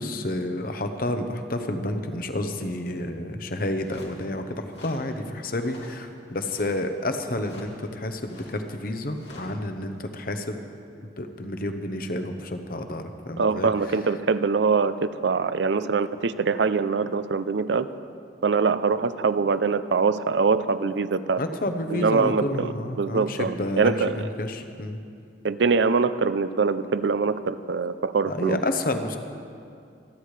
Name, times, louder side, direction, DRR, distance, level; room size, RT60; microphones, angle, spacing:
voice 1, 0.0-10.6 11.2-14.0 21.4-25.0 28.3-29.2, left 1 dB, 50° left, 7 dB, 0.9 m, -30 dB
sound 1, 3.8-4.2 4.7-5.1 5.5-6.0 6.3-6.9 7.4-7.7 8.2-9.5, left 2 dB, 70° left, 2.4 m, -47 dB
voice 2, 13.4-17.9 18.4-21.4 21.9-24.2 25.4-28.6, right 4 dB, 65° right, 13 dB, 0.5 m, -23 dB
26.5 x 10.0 x 3.3 m, 2.4 s
head